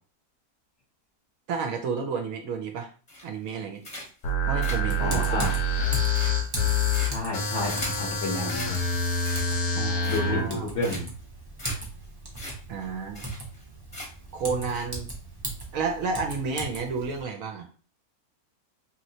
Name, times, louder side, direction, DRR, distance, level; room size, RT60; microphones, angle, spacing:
voice 1, 1.5-2.9 3.2-3.8 4.5-5.5 9.7-10.7 12.7-13.3 14.3-15.1 15.7-17.7, right 5 dB, 70° right, 4 dB, 0.9 m, -31 dB
sound 1, 3.1-3.5 3.8-4.3 4.6-8.1 8.5-8.7 9.1-9.7 10.0-10.5 10.8-11.2 11.6-11.8 12.0-12.1 12.4-12.5 12.8-12.9 13.1-13.6 13.9-14.3 14.7-14.8, left 1 dB, 30° left, 0.8 m, -39 dB
sound 2, 4.2-10.4, left 2 dB, 90° left, 1.2 m, -26 dB
Typing, 4.9-17.2, right 2 dB, 30° right, 0.4 m, -38 dB
voice 2, 5.0-5.5 7.1-8.8 10.1-11.0, left 2 dB, 55° left, -2 dB, 0.9 m, -30 dB
3.0 x 2.8 x 2.7 m, 0.38 s
omnidirectional pair, 1.6 m